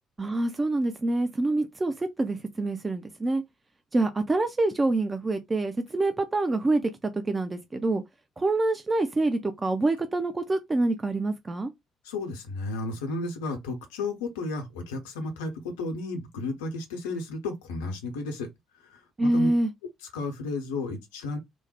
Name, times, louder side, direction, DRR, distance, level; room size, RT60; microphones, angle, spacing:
voice 1, 0.2-3.4 3.9-8.0 8.4-11.7 19.2-19.7, right 2 dB, 25° right, 0.5 m, -26 dB
voice 2, 12.0-18.5 18.7-19.5 20.1-21.4, left 3 dB, 70° left, 0.7 m, -33 dB
3.1 x 2.1 x 4.1 m
figure-of-eight pair, 45°, 0 cm